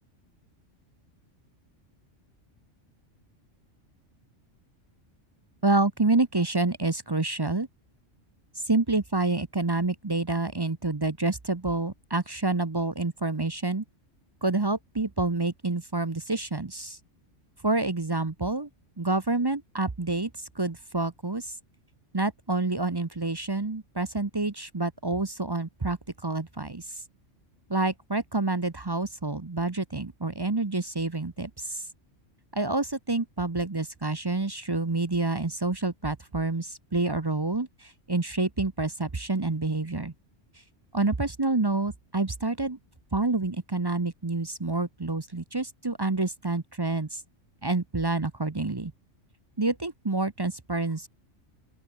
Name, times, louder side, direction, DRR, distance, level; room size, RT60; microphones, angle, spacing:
voice 1, 5.6-7.7 8.7-13.8 14.4-17.0 17.6-18.7 19.0-21.6 22.1-26.9 27.7-31.8 32.5-40.1 40.9-42.8 43.1-47.2 47.6-48.9 49.6-51.1, right 3 dB, 25° right, 0.8 m, -28 dB
open air
omnidirectional pair, 1.3 m